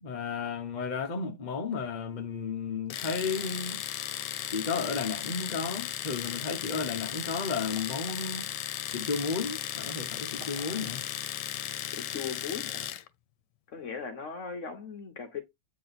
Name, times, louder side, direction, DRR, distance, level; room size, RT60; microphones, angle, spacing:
voice 1, 0.0-3.8 4.5-8.5 8.8-11.1, left 5 dB, 40° left, 0.7 m, -33 dB
Domestic sounds home sounds, 2.9-13.1, left 12 dB, 85° left, 1.2 m, -36 dB
sound 1, 3.3-3.6 4.3-6.2 7.8-8.9 9.4-9.5 9.9-10.0 10.4-11.0, right 5 dB, 70° right, 2.1 m, -54 dB
voice 2, 11.9-12.9 13.7-15.4, left 6 dB, 55° left, 1.1 m, -38 dB
8.5 x 2.9 x 4.0 m
omnidirectional pair, 1.8 m